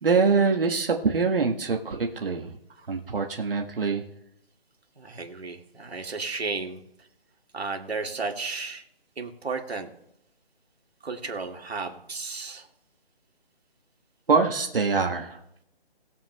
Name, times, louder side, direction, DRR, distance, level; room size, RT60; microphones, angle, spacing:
voice 1, 0.0-2.5 2.9-4.0 14.3-15.4, right 4 dB, 65° right, 2 dB, 1.4 m, -24 dB
voice 2, 5.0-6.8 7.5-8.8 9.2-9.9 11.0-12.7, right 4 dB, 85° right, 3 dB, 2.0 m, -33 dB
21.0 x 7.6 x 2.2 m, 0.80 s
hypercardioid pair, 170°, 31 cm